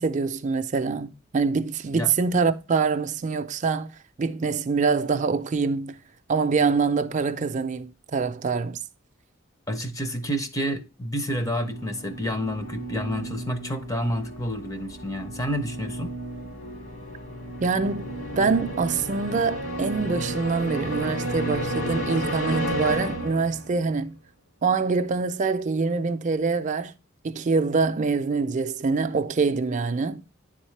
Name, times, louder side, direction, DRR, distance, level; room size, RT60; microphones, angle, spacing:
voice 1, 0.0-3.9 4.2-6.0 6.3-8.8 17.6-18.1 18.4-24.1 24.6-26.9 27.2-30.2, right 4 dB, 40° right, 0.4 m, -25 dB
voice 2, 9.7-16.1, equal, 15° left, 0.6 m, -29 dB
sound 1, 11.2-23.8, right 1 dB, 65° left, 2.2 m, -32 dB
9.9 x 3.6 x 3.2 m
head